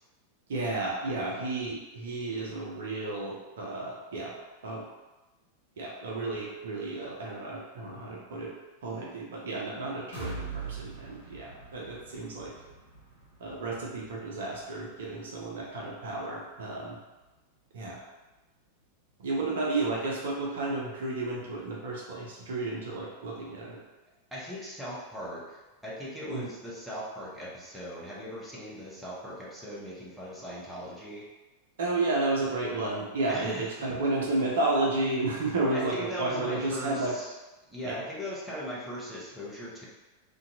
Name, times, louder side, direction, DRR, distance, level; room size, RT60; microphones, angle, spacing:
voice 1, 0.5-4.4 4.6-4.8 5.8-8.5 8.8-12.5 13.4-17.0 17.7-18.0 19.2-23.8 26.3-26.5 31.8-37.1 37.8-38.0, right 2 dB, 60° right, -3 dB, 0.5 m, -32 dB
sound 1, 10.1-17.9 18.3-18.4 18.8-18.9, right 4 dB, 70° left, 0.6 m, -45 dB
voice 2, 24.3-31.3 33.3-33.9 35.7-37.3 37.7-39.9, equal, 5° right, -7 dB, 0.7 m, -39 dB
2.5 x 2.2 x 2.6 m, 1.1 s
figure-of-eight pair, 90°, 0 cm